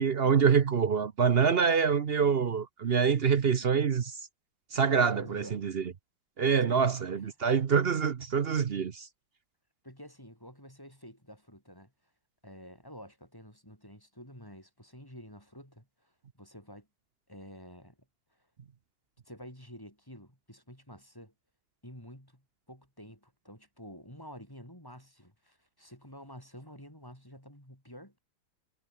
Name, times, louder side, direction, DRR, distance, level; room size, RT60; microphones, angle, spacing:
voice 1, 0.0-4.1 4.7-5.8 6.4-9.1, right 6 dB, 55° right, 0.7 m, -26 dB
voice 2, 5.1-5.7 6.7-7.3 9.8-12.1 12.4-16.9 17.3-18.0 18.3-18.5 19.3-21.3 21.8-28.2, equal, 10° left, 7.3 m, -50 dB
omnidirectional pair, 2.2 m